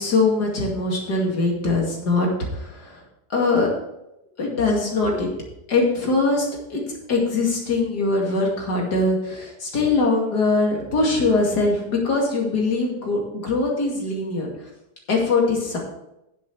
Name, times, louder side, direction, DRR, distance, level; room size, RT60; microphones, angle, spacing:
voice 1, 0.0-3.0 3.3-3.7 4.4-5.3 5.7-6.8 7.1-14.5 15.1-15.8, left 3 dB, 90° left, -1 dB, 3.0 m, -22 dB
9.9 x 7.9 x 4.9 m, 0.86 s
omnidirectional pair, 1.7 m